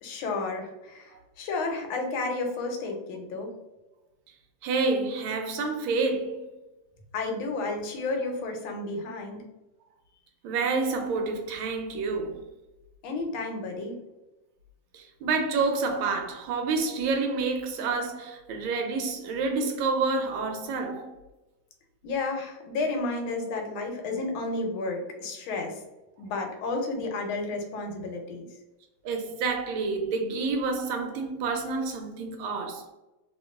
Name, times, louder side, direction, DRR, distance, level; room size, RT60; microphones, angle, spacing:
voice 1, 0.0-3.5 7.1-9.4 13.0-14.0 22.0-25.7 26.2-28.5, left 3 dB, 85° left, 1.5 m, -32 dB
voice 2, 4.6-6.4 10.4-12.4 14.9-21.1 29.0-32.9, right 4 dB, 85° right, 1.4 m, -28 dB
2.9 x 2.9 x 2.2 m
omnidirectional pair, 2.2 m